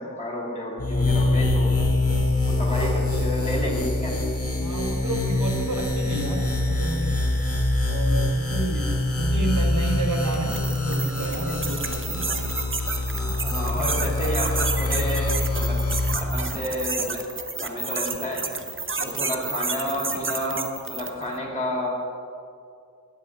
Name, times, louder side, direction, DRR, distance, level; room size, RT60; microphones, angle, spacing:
voice 1, 0.0-1.8 2.5-4.2 13.4-15.8 16.1-17.2 17.6-18.4 19.0-21.9, equal, 20° left, -3 dB, 2.8 m, -30 dB
sound 1, 0.8-16.2, left 2 dB, 45° left, 1.6 m, -24 dB
voice 2, 2.6-3.0 4.6-7.1 7.8-12.3 13.1-14.0 14.8-14.9, right 2 dB, 65° right, 0 dB, 1.5 m, -31 dB
sound 2, 10.3-21.3, right 4 dB, 35° right, 0.7 m, -31 dB
13.0 x 10.0 x 3.6 m, 2.4 s
wide cardioid pair, 75°, 34 cm